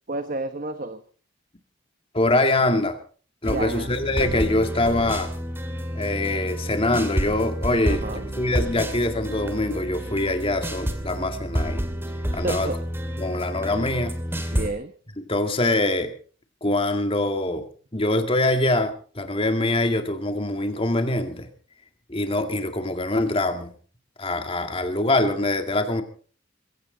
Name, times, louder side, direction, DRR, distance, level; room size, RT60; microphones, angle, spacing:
voice 1, 0.1-1.0 3.5-3.9 7.9-8.2 12.4-12.8 14.5-14.9, right 2 dB, 40° right, 9 dB, 1.1 m, -30 dB
voice 2, 2.1-3.0 3.4-5.3 6.0-11.8 12.3-12.7 13.2-14.1 14.4-14.6 15.2-16.1 16.6-17.7 17.9-21.5 22.1-23.7 24.2-26.0, left 2 dB, 30° left, 7 dB, 2.1 m, -24 dB
sound 1, 3.4-14.7, equal, 10° right, 2.4 m, -29 dB
21.5 x 16.5 x 4.0 m, 0.42 s
head